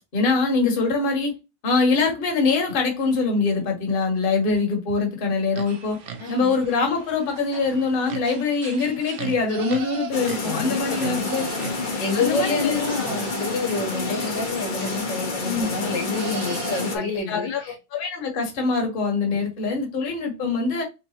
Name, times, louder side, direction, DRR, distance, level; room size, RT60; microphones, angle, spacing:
voice 1, 0.1-1.3 1.6-6.0 6.3-11.4 12.1-12.8 15.4-15.7 16.9-17.6 17.9-20.8, left 4 dB, 35° left, 1.1 m, -23 dB
sound 1, 5.5-17.2, right 6 dB, 60° right, 0.7 m, -39 dB
voice 2, 6.2-6.6 10.4-11.5 12.0-17.7, left 4 dB, 70° left, 1.6 m, -28 dB
sound 2, 10.1-17.0, left 3 dB, 50° left, 0.6 m, -29 dB
3.9 x 3.5 x 2.8 m
omnidirectional pair, 2.1 m